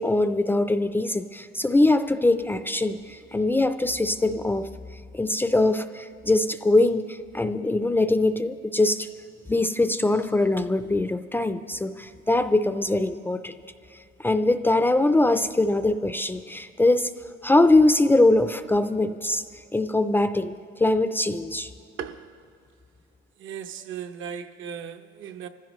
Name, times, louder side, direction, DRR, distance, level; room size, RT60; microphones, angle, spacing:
voice 1, 0.0-4.7 5.1-9.1 9.5-13.5 14.2-17.1 17.4-19.4 19.7-20.5 20.8-21.7, left 2 dB, 10° left, 0.4 m, -22 dB
voice 2, 23.4-25.5, right 8 dB, 70° right, 0.8 m, -36 dB
25.5 x 15.5 x 3.1 m
cardioid pair, 140°, 21 cm